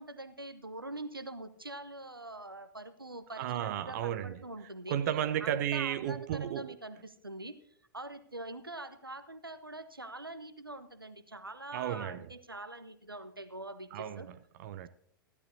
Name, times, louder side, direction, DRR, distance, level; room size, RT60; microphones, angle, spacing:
voice 1, 0.0-5.0 5.4-7.6 7.9-14.3, right 2 dB, 90° right, 0.9 m, -44 dB
voice 2, 3.4-4.4 4.9-6.7 11.7-12.3 13.9-14.9, right 10 dB, 50° right, 0.6 m, -34 dB
16.5 x 12.0 x 2.7 m
figure-of-eight pair, 95°, 12 cm